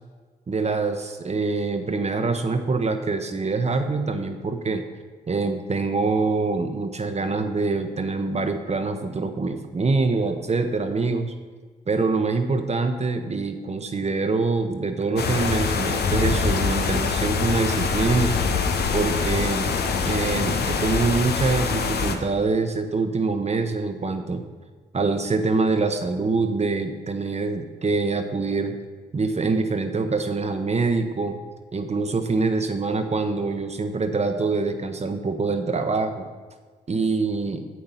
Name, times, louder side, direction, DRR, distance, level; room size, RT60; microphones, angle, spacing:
voice 1, 0.5-4.8 5.3-11.3 11.9-18.3 18.9-19.8 20.0-24.4 24.9-28.7 29.1-31.4 31.7-36.3 36.9-37.6, right 3 dB, 40° right, 7 dB, 0.9 m, -25 dB
sound 1, 15.2-22.1, left 5 dB, 75° left, 0.9 m, -24 dB
7.7 x 6.8 x 5.7 m, 1.4 s
cardioid pair, 55°, 17 cm